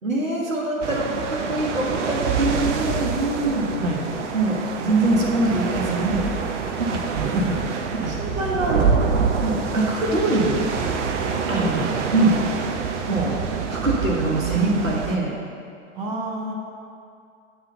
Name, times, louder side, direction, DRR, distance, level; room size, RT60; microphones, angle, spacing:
voice 1, 0.0-3.7 4.3-6.3 6.8-7.0 7.9-9.0 9.4-10.7 11.5-11.7 12.1-12.4 13.1-13.4 13.7-15.3, right 2 dB, 85° right, -4 dB, 1.5 m, -23 dB
sound 1, 0.8-15.2, right 5 dB, 65° right, 0.8 m, -26 dB
voice 2, 7.2-7.5 8.0-8.1 11.5-11.9 15.9-16.5, right 1 dB, 50° right, -1 dB, 1.3 m, -26 dB
7.7 x 3.9 x 6.6 m, 2.4 s
figure-of-eight pair, 90°, 39 cm